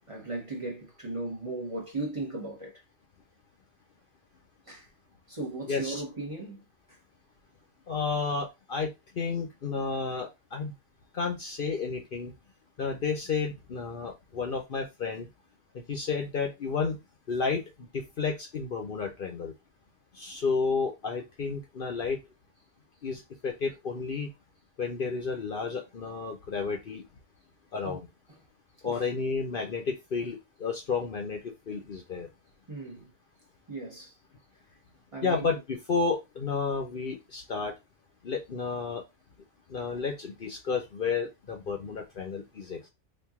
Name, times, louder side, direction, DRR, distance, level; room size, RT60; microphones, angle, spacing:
voice 1, 0.1-2.7 4.7-4.9 5.3-6.6 27.8-28.0 28.3-28.4 28.8-29.0 32.7-33.1 33.7-34.1 35.1-35.4, right 2 dB, 30° right, 1.0 m, -36 dB
voice 2, 5.7-6.0 7.9-8.9 9.2-10.7 11.1-12.3 12.8-15.3 15.9-17.0 17.3-17.6 17.9-19.5 20.2-22.2 23.0-24.3 24.8-27.0 27.7-28.1 28.8-31.4 31.7-32.3 35.2-37.7 38.2-39.0 39.7-42.9, left 5 dB, 50° left, 0.8 m, -31 dB
2.9 x 2.6 x 3.5 m
omnidirectional pair, 1.3 m